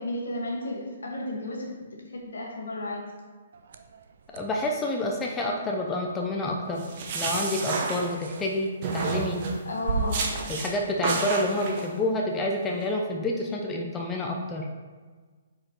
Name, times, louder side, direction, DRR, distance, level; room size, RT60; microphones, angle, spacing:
voice 1, 0.0-1.7 1.9-3.0 9.6-10.3, left 1 dB, 80° left, 0 dB, 1.5 m, -33 dB
sound 1, 3.5-11.8, right 4 dB, 65° right, 0.5 m, -39 dB
voice 2, 4.3-6.8 7.1-9.4 10.5-14.7, left 1 dB, 15° left, 0 dB, 0.6 m, -28 dB
sound 2, 6.8-8.5 8.8-9.6 10.1-10.7 11.0-11.9, right 4 dB, 45° right, 1.0 m, -30 dB
5.0 x 4.4 x 4.4 m, 1.4 s
hypercardioid pair, 145°, 0 cm